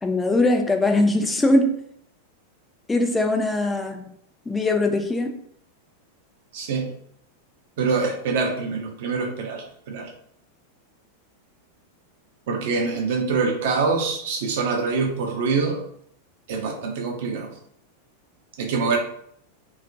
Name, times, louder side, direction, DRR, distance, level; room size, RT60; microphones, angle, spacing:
voice 1, 0.0-1.7 2.9-4.0 4.5-5.4, left 2 dB, 10° left, 4 dB, 0.3 m, -21 dB
voice 2, 6.5-6.9 7.8-10.1 12.5-15.8 16.5-17.5 18.6-19.0, right 4 dB, 55° right, 2 dB, 0.5 m, -25 dB
2.3 x 2.1 x 2.6 m, 0.67 s
figure-of-eight pair, 90°, 0 cm